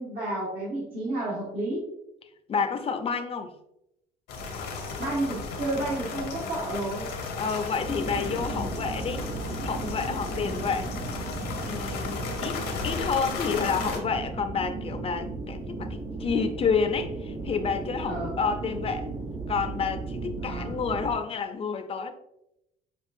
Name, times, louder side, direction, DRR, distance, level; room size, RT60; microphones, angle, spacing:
voice 1, 0.0-1.8 5.0-7.1 8.4-8.7 10.4-10.6 18.0-18.3 20.4-20.7, right 2 dB, 60° right, -7 dB, 1.6 m, -31 dB
voice 2, 2.5-3.5 7.4-9.3 9.6-10.9 11.7-19.1 19.5-22.1, left 5 dB, 35° left, 7 dB, 0.5 m, -29 dB
sound 1, 4.3-14.0, left 4 dB, 85° left, 1.0 m, -35 dB
sound 2, 7.8-21.1, right 3 dB, 20° right, 0.8 m, -36 dB
6.9 x 2.4 x 2.6 m, 0.85 s
cardioid pair, 110°, 17 cm